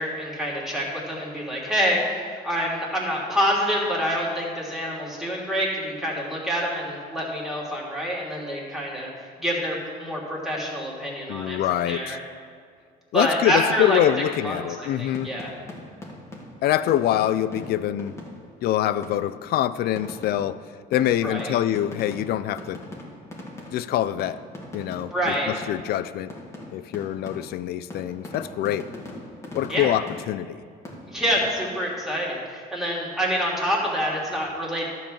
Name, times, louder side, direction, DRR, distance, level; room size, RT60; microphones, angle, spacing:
voice 1, 0.0-9.1 9.4-11.6 11.9-12.2 13.1-14.0 14.4-15.5 21.2-21.5 25.1-25.5 29.7-29.9 31.1-34.9, equal, ahead, -5 dB, 2.8 m, -27 dB
voice 2, 11.3-12.2 13.1-15.4 16.6-18.2 18.6-20.7 20.9-22.8 23.7-24.4 24.7-26.3 26.7-28.9 29.5-30.6, left 12 dB, 70° left, 15 dB, 0.4 m, -25 dB
sound 1, 15.1-18.6 19.0-19.4 20.0-26.0 26.3-30.6 30.8-31.8, left 1 dB, 15° left, 1.9 m, -41 dB
12.0 x 4.7 x 7.2 m, 2.2 s
cardioid pair, 110°, 17 cm